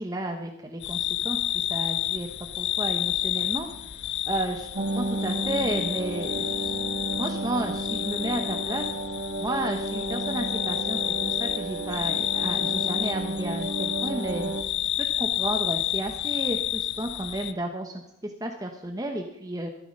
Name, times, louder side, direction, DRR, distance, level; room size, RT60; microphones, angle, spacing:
voice 1, 0.0-2.3 2.6-3.7 4.3-6.7 7.2-8.9 9.4-14.5 15.0-19.7, right 1 dB, 20° right, 4 dB, 0.9 m, -32 dB
sound 1, 0.8-17.5, left 12 dB, 60° left, 0.6 m, -30 dB
sound 2, 4.7-14.6, right 2 dB, 85° right, 1.7 m, -32 dB
14.0 x 13.0 x 5.4 m, 0.87 s
head